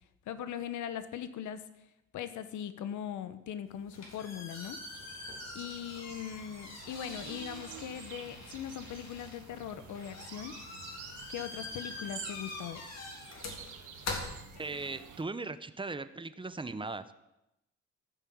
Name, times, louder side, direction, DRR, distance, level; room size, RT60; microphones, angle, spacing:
voice 1, 0.3-1.6 2.1-4.8 5.5-10.6 11.3-12.8, left 9 dB, 75° left, 12 dB, 1.0 m, -40 dB
sound 1, 3.7-15.1, left 3 dB, 60° left, 3.4 m, -44 dB
sound 2, 4.8-15.2, right 9 dB, 80° right, 1.4 m, -50 dB
voice 2, 14.6-17.2, right 3 dB, 15° right, 13 dB, 0.8 m, -38 dB
15.0 x 5.6 x 8.5 m, 0.89 s
cardioid pair, 90°, 30 cm